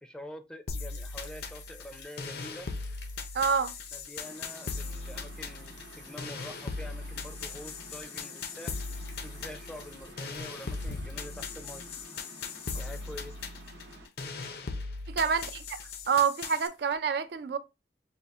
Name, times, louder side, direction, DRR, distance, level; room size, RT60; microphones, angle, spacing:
voice 1, 0.0-2.7 3.9-8.9 9.2-11.8 12.7-13.4, left 1 dB, 5° left, 0.4 m, -46 dB
sound 1, 0.7-16.7, left 4 dB, 60° left, 0.5 m, -39 dB
sound 2, 0.9-17.0, left 4 dB, 90° left, 0.9 m, -52 dB
voice 2, 3.3-3.7 15.1-15.8 16.1-17.6, right 6 dB, 60° right, 0.4 m, -27 dB
sound 3, 4.2-14.1, right 1 dB, 80° right, 0.9 m, -51 dB
5.2 x 2.4 x 2.4 m
head